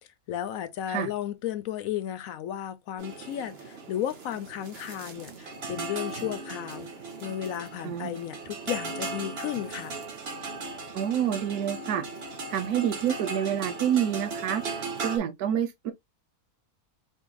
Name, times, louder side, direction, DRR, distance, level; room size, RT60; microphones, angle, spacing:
voice 1, 0.3-6.9 7.2-10.0, left 11 dB, 70° left, 0.9 m, -34 dB
sound 1, 3.0-15.2, right 3 dB, 45° right, 1.0 m, -37 dB
voice 2, 7.8-8.2 10.9-12.1 12.5-14.6 15.0-15.9, right 10 dB, 80° right, 1.2 m, -27 dB
4.5 x 3.1 x 2.3 m
omnidirectional pair, 1.6 m